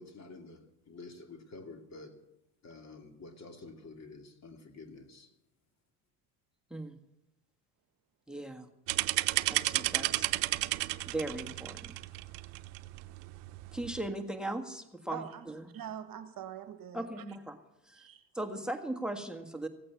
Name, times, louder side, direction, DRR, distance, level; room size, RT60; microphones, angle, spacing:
voice 1, 0.0-2.2 2.6-5.3, left 3 dB, 35° left, 5 dB, 2.6 m, -49 dB
voice 2, 8.3-8.7 9.5-10.3 11.1-12.0 13.7-15.7 16.9-17.6 17.9-18.0 18.4-19.7, right 1 dB, ahead, 7 dB, 1.7 m, -38 dB
sound 1, 8.9-14.1, right 19 dB, 75° right, 0.8 m, -33 dB
voice 3, 15.1-15.5 15.7-17.2 18.0-18.2, right 10 dB, 50° right, 10 dB, 1.4 m, -44 dB
16.0 x 8.7 x 8.4 m, 0.90 s
hypercardioid pair, 70°, 44 cm